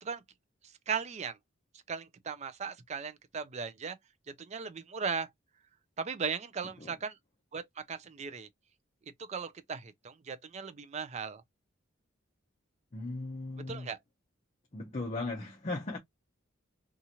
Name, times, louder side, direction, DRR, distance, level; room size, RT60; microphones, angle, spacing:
voice 1, 0.9-1.4 1.9-4.0 4.4-5.3 6.0-7.2 7.5-8.5 9.2-11.4 13.7-14.0, right 6 dB, 35° right, 0.4 m, -37 dB
voice 2, 12.9-13.9 14.7-16.0, left 2 dB, 35° left, 0.6 m, -37 dB
2.8 x 2.4 x 2.7 m
head